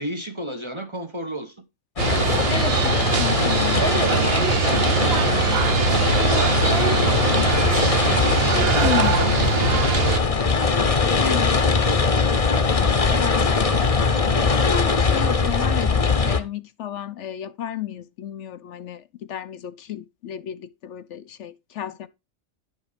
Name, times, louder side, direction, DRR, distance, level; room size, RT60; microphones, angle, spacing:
voice 1, 0.0-1.6 3.7-9.1 9.4-10.2 10.8-12.3, right 1 dB, 25° right, 0.9 m, -35 dB
sound 1, 2.0-16.4, left 4 dB, 30° left, 0.9 m, -21 dB
sound 2, 2.0-10.2, right 7 dB, 50° right, 1.1 m, -22 dB
voice 2, 2.5-3.9 8.8-9.3 11.2-11.5 13.1-13.8 14.1-22.1, left 11 dB, 65° left, 0.9 m, -32 dB
10.5 x 5.6 x 5.0 m
omnidirectional pair, 1.4 m